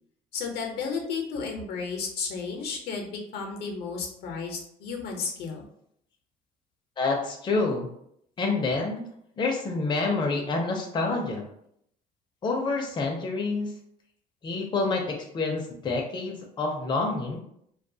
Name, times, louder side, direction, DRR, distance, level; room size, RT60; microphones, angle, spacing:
voice 1, 0.3-5.6, left 5 dB, 70° left, 2 dB, 0.6 m, -33 dB
voice 2, 7.0-7.9 8.4-9.0 9.4-11.4 12.4-13.7 14.4-17.4, left 3 dB, 25° left, 1 dB, 0.5 m, -27 dB
2.3 x 2.2 x 2.6 m, 0.71 s
cardioid pair, 110°, 17 cm